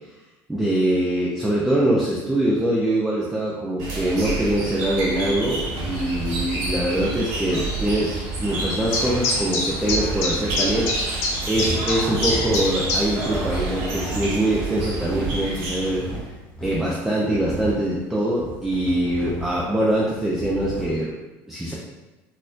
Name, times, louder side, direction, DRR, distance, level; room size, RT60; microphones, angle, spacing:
voice 1, 0.5-10.9 11.5-16.0 16.6-21.1 21.5-21.7, right 1 dB, 5° right, -5 dB, 0.4 m, -23 dB
sound 1, 3.8-16.3, right 2 dB, 90° right, 1.0 m, -29 dB
sound 2, 8.7-13.3 13.5-13.6 14.2-14.3, left 3 dB, 75° left, 0.9 m, -24 dB
sound 3, 11.2-21.1, right 1 dB, 15° left, 1.0 m, -35 dB
4.1 x 2.6 x 2.4 m, 1.1 s
cardioid pair, 145°, 8 cm